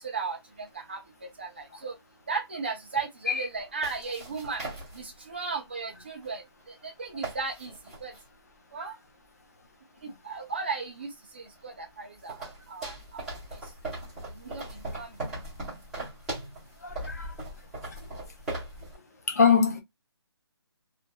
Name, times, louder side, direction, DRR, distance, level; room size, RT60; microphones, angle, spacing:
sound 1, 0.7-0.8 3.5-5.4 6.2-6.3 6.6-6.7 7.0-8.3 10.7-10.8 11.5-19.0, right 2 dB, 5° right, 0.9 m, -39 dB
voice 1, 1.4-1.9 2.3-4.6 4.9-6.4 6.8-7.7 8.0-8.1 8.7-8.9 10.0-12.4 12.7-13.2 14.4-14.6 15.0-15.1, right 4 dB, 25° right, 0.5 m, -35 dB
voice 2, 16.8-17.3 19.3-19.8, left 6 dB, 40° left, 0.6 m, -23 dB
2.8 x 2.5 x 2.2 m
hypercardioid pair, 175°, 14 cm